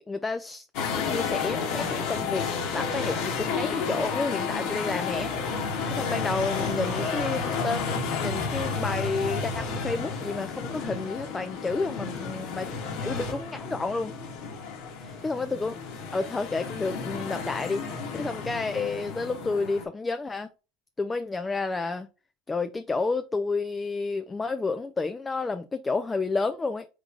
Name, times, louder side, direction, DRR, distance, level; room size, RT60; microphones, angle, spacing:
voice 1, 0.1-0.6 0.9-12.7 13.0-14.1 15.0-15.7 16.1-17.8 18.1-20.5 21.0-22.1 22.5-26.9, left 3 dB, 15° left, 0.4 m, -30 dB
sound 1, 0.7-19.8, left 5 dB, 60° left, 1.1 m, -31 dB
3.7 x 3.6 x 3.1 m
hypercardioid pair, 90°, 0 cm